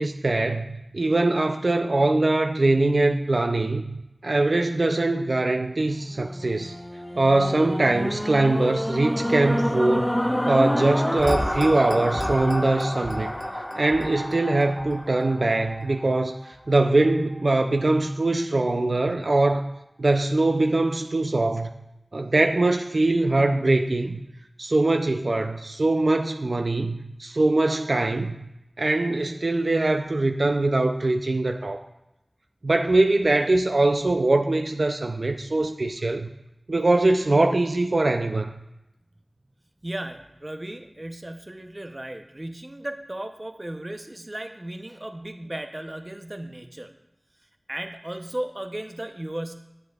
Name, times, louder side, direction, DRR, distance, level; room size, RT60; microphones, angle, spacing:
voice 1, 0.0-4.0 4.2-6.7 7.2-10.2 10.5-13.3 13.8-19.6 20.0-21.7 22.1-24.2 24.6-28.4 28.8-31.8 32.6-36.3 36.7-38.6, right 2 dB, 70° right, 5 dB, 0.4 m, -22 dB
sound 1, 6.1-16.4 17.0-17.1, equal, 15° left, 0.7 m, -28 dB
voice 2, 39.8-46.9 47.7-49.5, right 1 dB, 35° right, 6 dB, 0.7 m, -35 dB
10.0 x 7.8 x 2.4 m, 0.92 s
wide cardioid pair, 45°, 0 cm